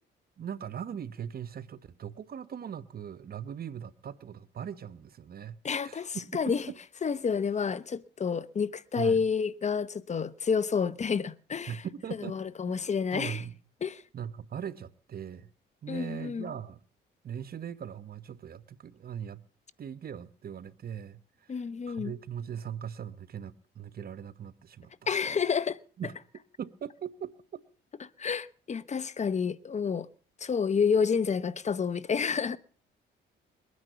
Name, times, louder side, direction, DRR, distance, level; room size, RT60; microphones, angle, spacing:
voice 1, 0.4-6.5 9.0-9.3 11.7-12.4 12.7-12.8 13.1-13.6 14.1-15.5 15.8-16.8 17.2-19.4 19.8-24.9 25.3-25.4 26.0-26.2 26.6-27.3, right 8 dB, 50° right, 1.1 m, -40 dB
voice 2, 5.6-6.7 7.0-11.8 12.2-13.4 13.8-14.0 15.9-16.5 21.5-22.1 25.1-25.8 28.0-30.1 30.4-32.6, left 6 dB, 35° left, 0.9 m, -29 dB
21.5 x 9.6 x 6.8 m
cardioid pair, 90°, 20 cm